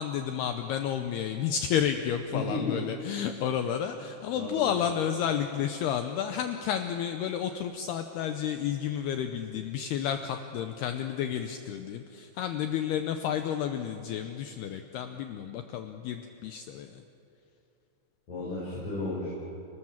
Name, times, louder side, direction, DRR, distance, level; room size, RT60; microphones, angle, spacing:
voice 1, 0.0-17.0, left 9 dB, 90° left, 7 dB, 2.3 m, -31 dB
voice 2, 2.3-2.8 4.3-4.8 18.3-19.3, left 3 dB, 40° left, -6 dB, 6.2 m, -33 dB
29.5 x 19.5 x 7.3 m, 2.9 s
omnidirectional pair, 5.7 m